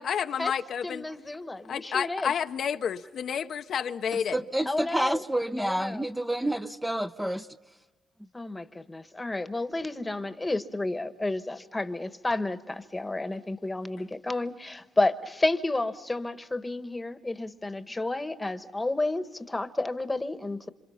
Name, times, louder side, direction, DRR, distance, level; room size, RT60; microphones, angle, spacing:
voice 1, 0.0-1.0 1.7-4.3, left 8 dB, 60° left, 0.8 m, -30 dB
voice 2, 0.8-2.3 4.7-5.2 5.6-6.0 8.3-20.7, left 2 dB, 15° left, 1.3 m, -31 dB
voice 3, 4.1-7.5, right 1 dB, 5° right, 0.8 m, -29 dB
28.0 x 26.0 x 5.7 m
cardioid pair, 90°, 0 cm